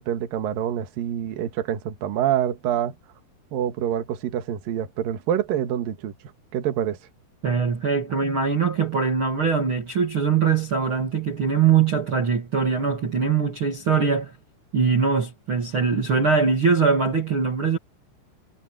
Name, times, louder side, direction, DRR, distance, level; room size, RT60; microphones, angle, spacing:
voice 1, 0.0-2.9 3.5-6.1 6.5-7.0, right 10 dB, 60° right, 3.0 m, -26 dB
voice 2, 7.4-14.3 14.7-17.8, right 5 dB, 35° right, 2.5 m, -22 dB
omnidirectional pair, 5.0 m